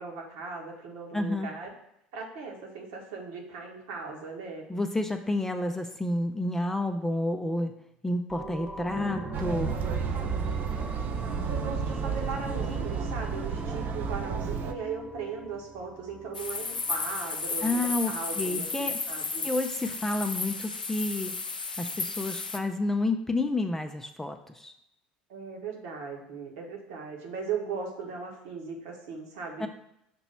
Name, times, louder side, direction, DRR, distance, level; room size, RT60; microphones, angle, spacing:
voice 1, 0.0-1.7 2.1-4.6 11.3-19.4 25.3-29.7, right 5 dB, 60° right, 0 dB, 1.3 m, -38 dB
voice 2, 1.1-1.5 4.7-7.7 8.0-9.7 17.6-19.0 19.4-21.4 21.8-24.7 29.6-29.7, left 2 dB, 10° left, 5 dB, 0.5 m, -30 dB
sound 1, 8.3-17.6 18.0-18.1, right 1 dB, 10° right, 0.9 m, -40 dB
sound 2, 9.3-14.7, right 6 dB, 45° right, 0.5 m, -32 dB
sound 3, 16.3-22.6, left 4 dB, 85° left, 0.4 m, -33 dB
6.0 x 3.0 x 5.5 m, 0.81 s
figure-of-eight pair, 70°, 5 cm